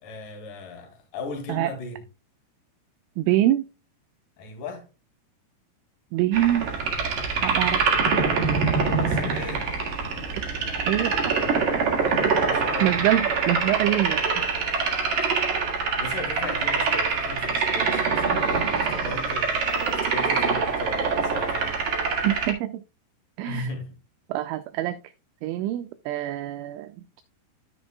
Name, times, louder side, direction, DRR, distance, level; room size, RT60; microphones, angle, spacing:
voice 1, 0.0-2.0 4.4-4.9 7.4-7.9 8.6-9.7 12.0-13.0 15.2-15.3 15.9-21.7 23.4-24.0, left 2 dB, 50° left, 3.2 m, -37 dB
voice 2, 3.2-3.6 6.1-6.7 7.4-7.8 10.3-10.4 10.9-11.2 12.8-14.2 22.2-22.8 23.4-23.7 24.3-25.0 25.4-27.2, right 13 dB, 85° right, 2.7 m, -25 dB
sound 1, 6.3-22.5, right 5 dB, 60° right, 2.0 m, -25 dB
sound 2, 6.4-20.2, left 1 dB, 30° left, 3.8 m, -41 dB
13.5 x 6.3 x 2.3 m
omnidirectional pair, 6.0 m